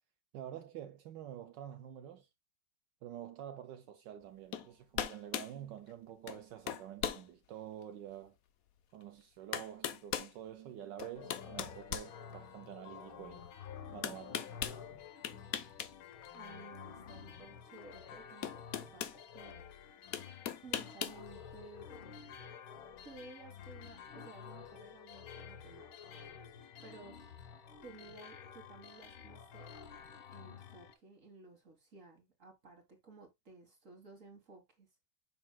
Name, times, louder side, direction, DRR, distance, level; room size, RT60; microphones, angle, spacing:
voice 1, 0.3-2.3 3.0-8.4 8.9-13.5 13.9-14.5, right 11 dB, 75° right, 1.2 m, -48 dB
Breaking walnuts with a hammer, 4.5-4.7 4.9-5.5 6.3-6.4 6.7-7.2 7.8-7.9 9.0-9.1 9.5-10.3 11.0-12.7 14.0-14.8 15.2-15.9 16.2-16.4 17.8-17.9 18.4-19.2 20.1-21.2, left 9 dB, 60° left, 0.9 m, -38 dB
sound 1, 11.1-30.9, left 7 dB, 85° left, 1.9 m, -51 dB
voice 2, 16.3-19.7 20.6-21.9 23.0-25.9 26.8-27.2 27.8-29.7 30.3-34.9, right 4 dB, 40° right, 1.9 m, -55 dB
7.5 x 5.9 x 2.2 m
omnidirectional pair, 2.2 m